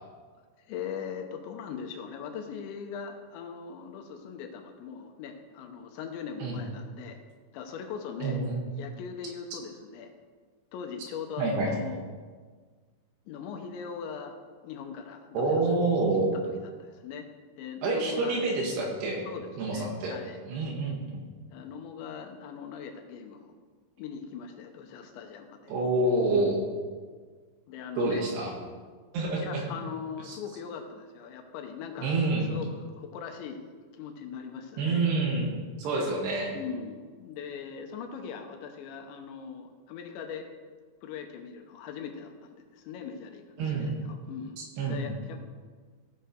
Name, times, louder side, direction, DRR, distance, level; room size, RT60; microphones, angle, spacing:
voice 1, 0.7-7.2 7.5-8.4 8.8-10.1 10.7-12.0 13.3-14.4 14.6-15.6 16.3-17.3 17.6-18.4 19.3-20.4 21.5-23.5 24.0-25.7 26.3-26.6 27.7-28.2 29.4-32.1 32.5-35.0 36.5-40.5 41.0-44.6 44.9-45.4, left 6 dB, 85° left, 4 dB, 3.1 m, -40 dB
voice 2, 8.2-8.6 11.4-11.7 15.3-16.3 17.8-19.3 19.6-20.2 20.5-21.0 25.7-26.6 28.0-28.5 29.1-29.7 30.3-30.4 32.0-32.5 34.8-35.5 35.8-36.5 43.6-43.9 44.6-45.1, right 3 dB, 70° right, 0 dB, 3.5 m, -27 dB
15.5 x 6.6 x 4.6 m, 1.5 s
omnidirectional pair, 5.3 m